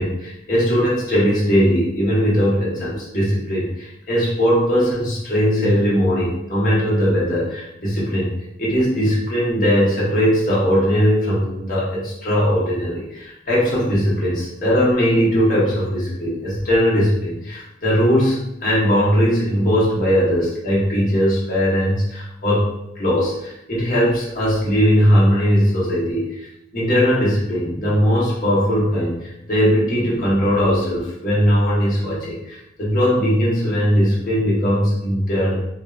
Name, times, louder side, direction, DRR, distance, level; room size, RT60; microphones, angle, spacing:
voice 1, 0.0-8.3 8.6-26.5 26.7-35.6, equal, 45° left, -7 dB, 1.1 m, -19 dB
3.4 x 2.7 x 2.4 m, 0.84 s
head